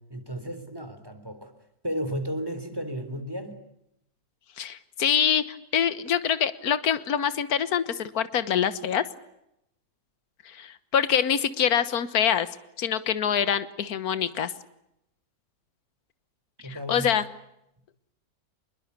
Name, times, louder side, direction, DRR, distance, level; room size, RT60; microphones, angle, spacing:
voice 1, 0.1-1.5 1.8-3.6 16.6-17.1, equal, 15° right, 9 dB, 3.5 m, -33 dB
voice 2, 4.6-9.1 10.4-12.5 12.8-14.5 16.7-17.2, left 8 dB, 75° left, 14 dB, 1.7 m, -25 dB
26.5 x 21.5 x 8.2 m, 0.82 s
omnidirectional pair, 1.6 m